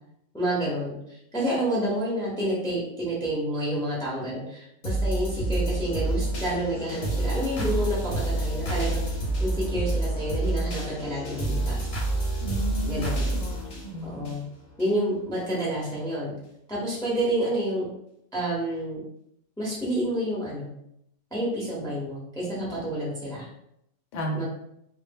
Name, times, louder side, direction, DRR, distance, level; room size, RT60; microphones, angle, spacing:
voice 1, 0.3-11.9 12.9-13.4 14.0-14.4 14.8-16.3 16.7-17.9 18.3-19.0 19.6-20.7 21.3-23.5 24.3-24.4, right 1 dB, 5° left, -6 dB, 0.5 m, -29 dB
sound 1, 4.8-14.9 15.3-15.4, right 2 dB, 50° left, 0.8 m, -28 dB
voice 2, 12.4-14.2 24.1-24.4, right 1 dB, 80° left, 1 dB, 1.0 m, -34 dB
2.1 x 2.0 x 3.4 m, 0.76 s
omnidirectional pair, 1.3 m